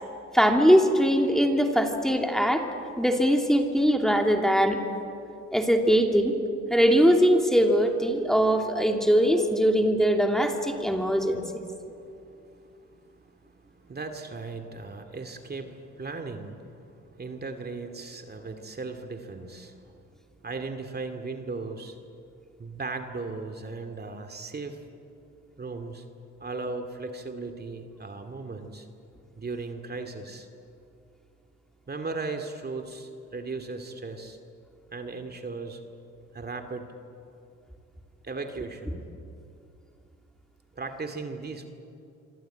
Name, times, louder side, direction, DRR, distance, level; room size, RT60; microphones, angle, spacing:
voice 1, 0.3-2.6 3.0-4.8 5.5-6.3 6.7-11.6, equal, ahead, 3 dB, 2.8 m, -21 dB
voice 2, 12.0-19.9 20.4-22.0 22.6-24.8 25.6-26.0 26.4-28.9 29.4-30.5 31.9-34.4 34.9-35.8 36.3-36.9 38.2-39.0 40.8-41.7, right 3 dB, 30° right, 5 dB, 2.4 m, -37 dB
26.0 x 25.5 x 9.1 m, 2.7 s
cardioid pair, 90°, 30 cm